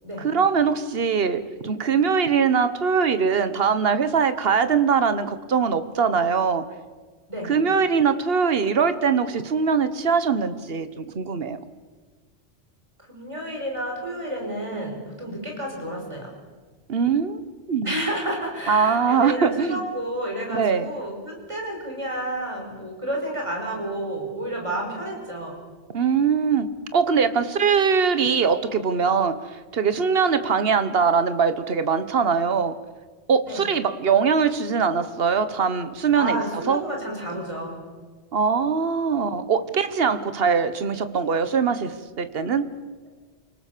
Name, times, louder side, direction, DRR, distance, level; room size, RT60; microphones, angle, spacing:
voice 1, 0.2-6.6 7.4-11.6 16.9-17.4 17.7-18.0 18.7-19.8 20.5-20.9 25.9-32.8 33.3-36.4 36.7-36.8 38.3-42.7, right 6 dB, 60° right, 11 dB, 1.4 m, -22 dB
voice 2, 13.1-16.3 17.8-25.6 33.5-33.7 36.2-37.8, right 1 dB, 30° right, 0 dB, 5.6 m, -30 dB
28.5 x 19.0 x 6.8 m, 1.4 s
omnidirectional pair, 1.1 m